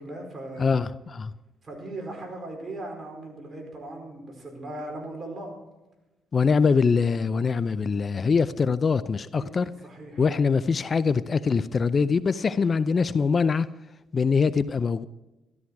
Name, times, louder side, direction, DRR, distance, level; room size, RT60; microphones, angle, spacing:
voice 1, 0.0-0.8 1.6-5.5 9.3-10.2, right 2 dB, 35° right, 2 dB, 4.8 m, -38 dB
voice 2, 0.6-1.3 6.3-9.7 10.2-13.7 14.1-15.1, left 5 dB, 40° left, 15 dB, 0.5 m, -23 dB
13.0 x 13.0 x 4.7 m, 1.0 s
cardioid pair, 90°, 0 cm